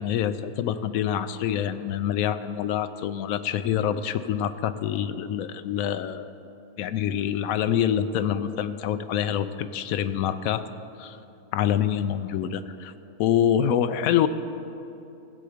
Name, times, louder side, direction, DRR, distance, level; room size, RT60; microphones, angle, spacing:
voice 1, 0.0-6.3 6.8-10.6 11.0-11.2 11.5-12.9 13.2-14.3, left 9 dB, 75° left, 11 dB, 1.0 m, -26 dB
16.5 x 7.8 x 5.0 m, 2.8 s
omnidirectional pair, 1.6 m